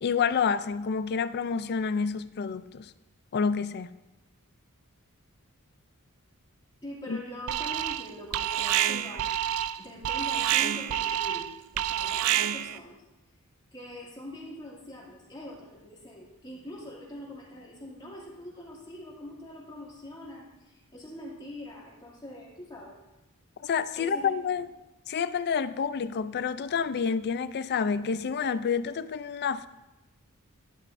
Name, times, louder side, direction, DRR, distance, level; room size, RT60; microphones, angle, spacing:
voice 1, 0.0-2.9 3.3-3.9 7.1-7.2 23.6-24.7 25.1-29.7, left 6 dB, 50° left, 0.4 m, -28 dB
voice 2, 6.8-9.3 9.8-13.0 13.7-23.0 23.9-24.6, left 1 dB, 20° left, 2.5 m, -43 dB
Alarm, 7.5-8.1 8.3-12.8, right 11 dB, 90° right, 0.4 m, -28 dB
12.0 x 11.5 x 2.6 m
head